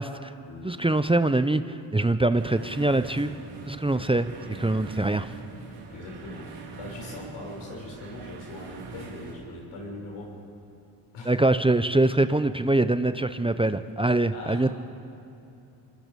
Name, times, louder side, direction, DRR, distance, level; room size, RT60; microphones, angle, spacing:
voice 1, 0.6-3.4 3.6-5.3 11.2-14.7, right 2 dB, 10° right, 11 dB, 0.8 m, -24 dB
sound 1, 2.4-9.3, right 4 dB, 85° right, 3.0 m, -43 dB
voice 2, 5.9-10.4 11.1-11.4 14.3-14.7, left 2 dB, 80° left, -2 dB, 6.3 m, -41 dB
26.0 x 21.0 x 5.4 m, 2.7 s
supercardioid pair, 55°, 48 cm